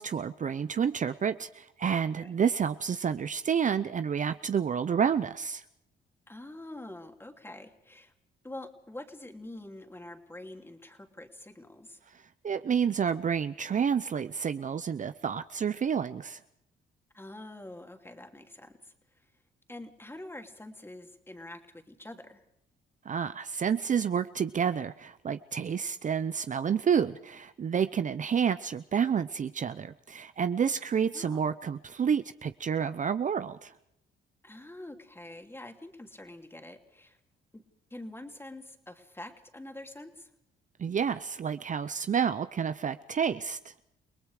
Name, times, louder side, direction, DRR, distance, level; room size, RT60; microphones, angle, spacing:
voice 1, 0.0-5.6 12.4-16.4 23.1-33.7 40.8-43.7, right 7 dB, 40° right, 12 dB, 0.7 m, -29 dB
voice 2, 6.3-8.1 8.4-12.0 17.1-18.9 19.7-22.4 31.1-31.5 34.4-37.2 37.5-37.6 37.9-40.3, left 1 dB, 10° left, 5 dB, 2.8 m, -45 dB
29.5 x 19.5 x 4.9 m, 0.81 s
cardioid pair, 90°, 20 cm